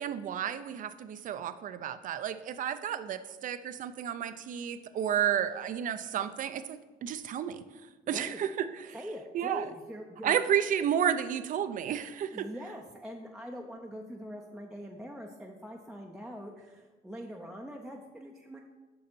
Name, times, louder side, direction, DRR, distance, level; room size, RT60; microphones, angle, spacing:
voice 1, 0.0-7.6 8.1-8.7 9.3-9.6 10.2-12.5, right 9 dB, 50° right, 12 dB, 0.5 m, -31 dB
voice 2, 8.1-8.4 8.9-10.4 12.3-18.6, equal, 5° right, 0 dB, 0.6 m, -43 dB
6.8 x 5.6 x 5.3 m, 1.2 s
cardioid pair, 110°, 17 cm